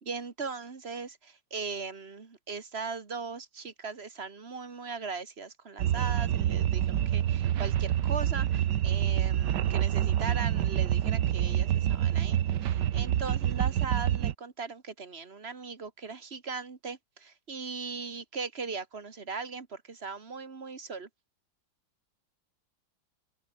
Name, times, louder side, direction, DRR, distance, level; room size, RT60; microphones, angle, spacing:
voice 1, 0.0-21.1, right 4 dB, 35° right, 1.9 m, -39 dB
sound 1, 5.8-14.3, right 11 dB, 65° right, 1.5 m, -27 dB
omnidirectional pair, 2.1 m